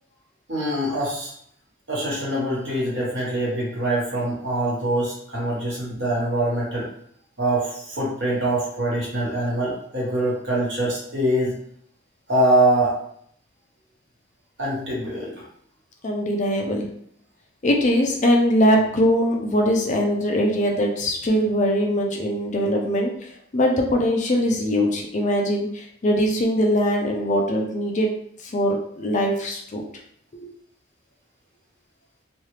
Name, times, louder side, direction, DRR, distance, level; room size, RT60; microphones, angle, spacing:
voice 1, 0.5-1.3 1.9-6.9 7.4-11.5 12.3-13.0 14.6-15.4, right 1 dB, 55° right, -6 dB, 1.3 m, -24 dB
voice 2, 16.0-16.9 17.6-28.1 28.4-29.8 30.4-30.5, equal, 35° left, 1 dB, 0.4 m, -21 dB
3.1 x 2.3 x 3.2 m, 0.67 s
head